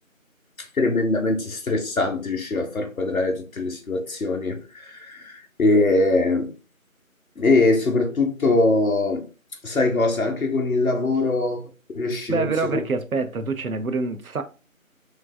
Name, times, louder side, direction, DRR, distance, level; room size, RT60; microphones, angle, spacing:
voice 1, 0.6-6.5 7.4-9.2 9.6-11.6 11.9-12.7, left 2 dB, 75° left, 0.9 m, -22 dB
voice 2, 12.3-14.4, right 4 dB, 80° right, 0.6 m, -26 dB
3.2 x 3.2 x 2.2 m
figure-of-eight pair, 175°, 42 cm